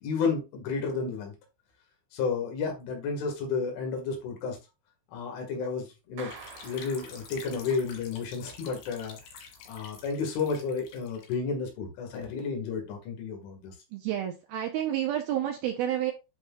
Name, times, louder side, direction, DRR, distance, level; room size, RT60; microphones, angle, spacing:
voice 1, 0.0-1.3 2.1-4.6 5.1-6.3 6.6-9.2 9.7-13.7, left 5 dB, 90° left, 2 dB, 4.4 m, -32 dB
Clapping, 6.2-7.9, right 5 dB, 60° right, 2.8 m, -48 dB
sound 1, 6.3-11.3, left 6 dB, 70° left, 3.9 m, -48 dB
voice 2, 13.9-16.1, right 11 dB, 90° right, 3 dB, 2.1 m, -30 dB
11.5 x 4.3 x 2.4 m, 0.26 s
omnidirectional pair, 5.3 m